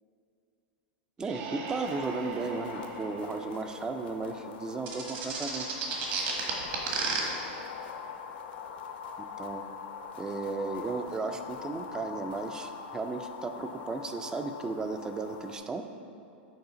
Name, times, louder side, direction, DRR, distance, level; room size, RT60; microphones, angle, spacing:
voice 1, 1.2-5.7 9.4-9.6 10.2-15.9, right 3 dB, 10° right, 8 dB, 0.3 m, -35 dB
sound 1, 1.2-4.8, right 5 dB, 45° right, 0.6 m, -43 dB
sound 2, 1.8-15.6, left 6 dB, 65° left, 0.7 m, -43 dB
sound 3, 4.9-7.2, right 5 dB, 65° right, 1.5 m, -31 dB
8.0 x 4.9 x 3.9 m, 2.6 s
supercardioid pair, 150°, 6 cm